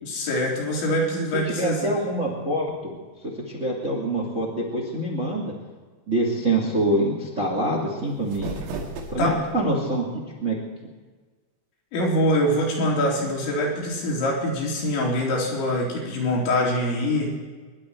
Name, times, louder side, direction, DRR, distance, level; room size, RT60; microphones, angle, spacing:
voice 1, 0.0-1.9 9.2-9.4 11.9-17.3, left 1 dB, 65° left, -3 dB, 5.9 m, -24 dB
voice 2, 1.2-2.9 3.4-5.5 6.1-8.5 9.1-10.6, right 1 dB, 30° right, -1 dB, 1.4 m, -25 dB
sound 1, 8.0-9.6, right 3 dB, 85° right, 4.8 m, -35 dB
24.5 x 12.0 x 4.6 m, 1.4 s
omnidirectional pair, 5.7 m